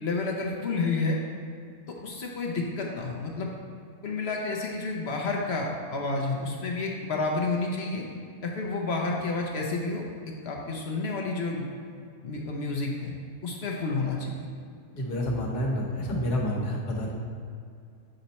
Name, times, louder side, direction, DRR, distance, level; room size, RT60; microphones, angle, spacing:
voice 1, 0.0-1.2 1.9-3.5 4.0-8.0 8.4-10.0 10.4-11.6 12.2-13.1 13.4-14.3, left 3 dB, 55° left, -1 dB, 0.8 m, -30 dB
voice 2, 14.9-17.1, equal, 80° left, -1 dB, 1.6 m, -29 dB
6.8 x 4.2 x 4.1 m, 2.3 s
omnidirectional pair, 1.6 m